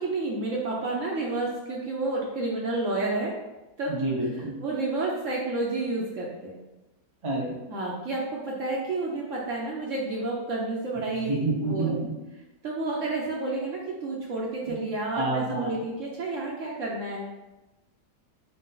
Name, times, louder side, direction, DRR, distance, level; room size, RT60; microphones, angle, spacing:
voice 1, 0.0-3.3 3.8-3.9 4.6-6.5 7.7-11.4 11.6-12.0 12.6-17.3, right 2 dB, 60° right, -3 dB, 0.9 m, -30 dB
voice 2, 3.9-4.6 7.2-7.6 11.1-12.2 14.7-14.8 15.1-15.7, right 2 dB, 30° right, -3 dB, 0.5 m, -28 dB
4.9 x 2.8 x 3.7 m, 1.0 s
omnidirectional pair, 1.8 m